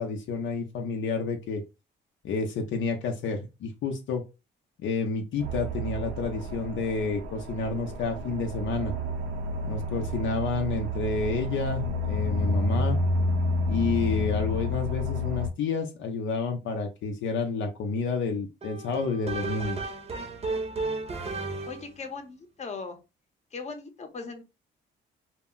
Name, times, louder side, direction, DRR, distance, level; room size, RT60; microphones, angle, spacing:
voice 1, 0.0-1.6 2.2-4.2 4.8-8.9 9.6-13.0 13.7-19.8, left 4 dB, 75° left, 4 dB, 0.6 m, -30 dB
sound 1, 5.4-15.5, left 1 dB, 80° right, 0.6 m, -30 dB
sound 2, 18.6-22.0, right 3 dB, 30° right, 0.7 m, -33 dB
voice 2, 21.6-23.0 23.5-24.4, left 4 dB, 35° left, 6 dB, 0.7 m, -38 dB
2.2 x 2.1 x 3.7 m, 0.26 s
cardioid pair, 90°, 20 cm